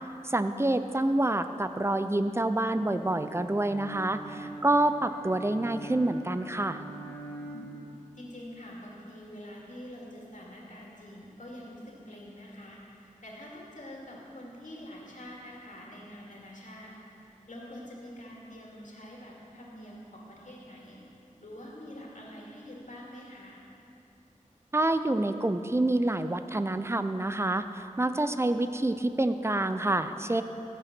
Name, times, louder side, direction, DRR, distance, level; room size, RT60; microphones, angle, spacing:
voice 1, 0.2-6.8 24.7-30.4, right 2 dB, 20° right, 10 dB, 0.5 m, -27 dB
Bowed string instrument, 2.6-7.9, right 2 dB, 15° left, 2.2 m, -44 dB
voice 2, 7.4-7.9 8.1-17.0 17.3-21.0 21.4-23.6, equal, 65° left, -3 dB, 2.6 m, -46 dB
14.0 x 7.9 x 6.1 m, 2.9 s
wide cardioid pair, 60°, 14 cm